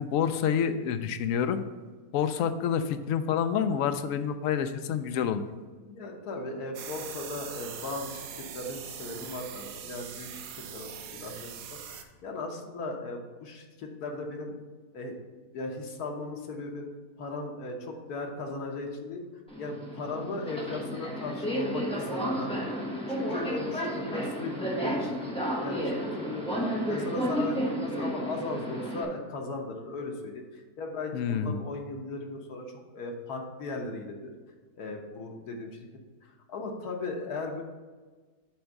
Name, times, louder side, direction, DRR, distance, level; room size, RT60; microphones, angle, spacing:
voice 1, 0.0-1.6 2.1-5.4 31.1-31.6, left 8 dB, 70° left, 9 dB, 0.9 m, -28 dB
voice 2, 5.8-10.5 10.7-14.5 14.9-15.2 15.5-16.9 17.2-19.2 19.6-22.7 23.1-25.1 25.5-25.9 26.2-32.6 32.9-34.3 34.8-35.8 36.2-37.6, left 3 dB, 90° left, 2 dB, 1.6 m, -37 dB
sound 1, 6.7-12.0, right 8 dB, 70° right, 1.1 m, -42 dB
Subway metro underground, 19.5-29.0, equal, 5° left, 1.2 m, -32 dB
7.9 x 3.5 x 6.5 m, 1.4 s
omnidirectional pair, 1.6 m